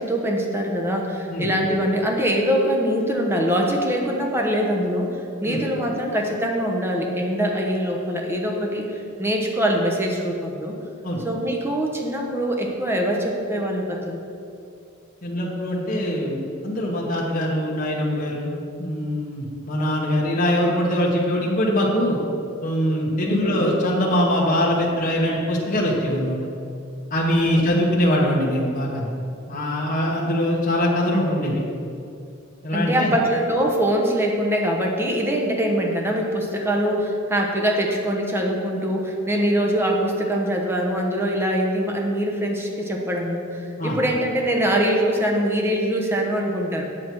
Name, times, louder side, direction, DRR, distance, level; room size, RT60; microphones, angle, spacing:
voice 1, 0.0-8.9 9.2-10.8 11.2-14.2 23.3-23.6 27.4-27.7 32.7-46.8, equal, 10° right, 0 dB, 1.0 m, -23 dB
voice 2, 15.2-22.2 22.6-26.4 27.1-29.1 29.5-31.6 32.6-33.1 43.8-44.0, equal, 40° left, -4 dB, 1.2 m, -22 dB
8.1 x 7.6 x 4.6 m, 2.6 s
head